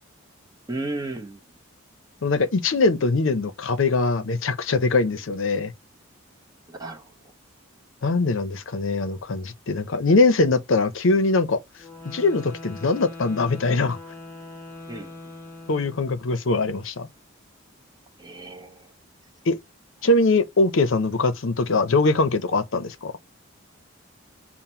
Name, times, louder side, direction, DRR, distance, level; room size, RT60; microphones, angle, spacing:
voice 1, 0.7-1.4 6.7-7.1 14.9-15.1 18.2-18.8, right 2 dB, 20° right, 0.7 m, -33 dB
voice 2, 2.2-5.7 8.0-11.6 12.0-14.0 15.7-17.1 19.5-19.6 20.0-23.1, left 3 dB, 65° left, 0.6 m, -22 dB
sound 1, 11.8-16.3, left 2 dB, 10° left, 0.9 m, -41 dB
5.8 x 2.1 x 4.3 m
head